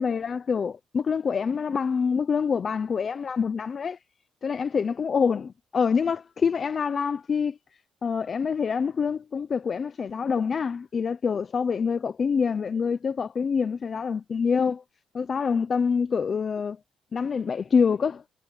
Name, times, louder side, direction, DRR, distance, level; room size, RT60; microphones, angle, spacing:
voice 1, 0.0-4.0 4.4-7.6 8.0-14.8 15.1-16.8 17.1-18.2, left 6 dB, 30° left, 0.5 m, -26 dB
cardioid pair, 175°, 0 cm